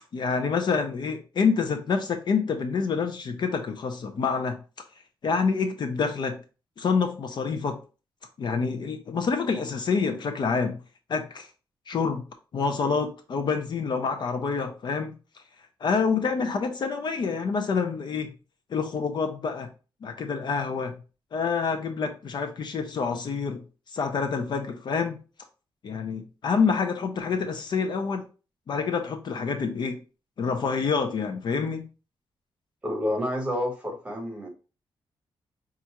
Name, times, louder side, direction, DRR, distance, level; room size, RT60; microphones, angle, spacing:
voice 1, 0.1-4.6 5.2-6.4 6.8-7.8 8.4-10.8 11.1-11.5 11.9-12.2 12.5-15.4 15.8-18.3 18.7-19.7 20.0-21.0 21.3-23.6 23.9-25.2 25.8-28.3 28.7-30.0 30.4-31.9, left 5 dB, 50° left, 0.5 m, -27 dB
voice 2, 32.8-34.5, left 1 dB, 10° right, 1.1 m, -29 dB
5.3 x 2.4 x 2.9 m
wide cardioid pair, 135°, 9 cm